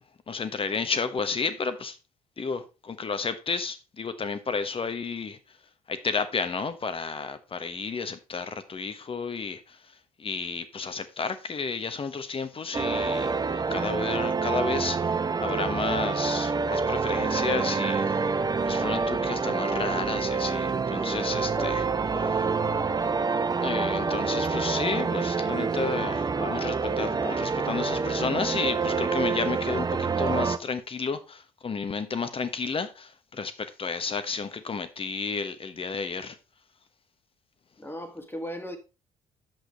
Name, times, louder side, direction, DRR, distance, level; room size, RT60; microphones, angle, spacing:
voice 1, 0.3-2.0 2.4-5.4 5.9-9.8 10.2-15.1 15.4-18.2 18.7-21.8 23.6-36.4, left 5 dB, 30° left, 1.1 m, -32 dB
sound 1, 12.7-30.6, right 4 dB, 25° right, 0.6 m, -27 dB
voice 2, 21.6-23.2 37.8-38.8, equal, 15° left, 1.7 m, -38 dB
9.0 x 7.8 x 3.3 m
figure-of-eight pair, 45°, 17 cm